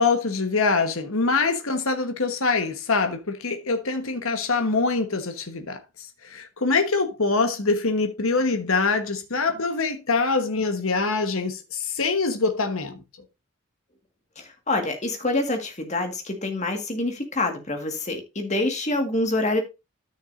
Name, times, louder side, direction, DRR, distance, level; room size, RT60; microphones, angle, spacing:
voice 1, 0.0-5.8 6.3-13.0, left 4 dB, 70° left, 1.3 m, -24 dB
voice 2, 14.4-19.6, left 2 dB, 30° left, 1.8 m, -26 dB
13.0 x 6.5 x 2.6 m
head